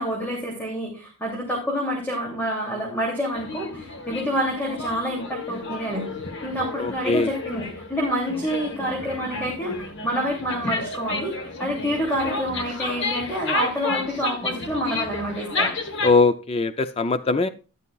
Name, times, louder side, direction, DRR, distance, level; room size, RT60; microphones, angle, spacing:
voice 1, 0.0-6.1 6.4-15.7, equal, 10° left, -1 dB, 2.8 m, -28 dB
sound 1, 3.3-16.1, left 3 dB, 55° left, 1.4 m, -31 dB
voice 2, 6.8-7.3 16.0-17.5, left 3 dB, 25° left, 10 dB, 0.5 m, -21 dB
12.5 x 11.0 x 2.4 m, 0.33 s
head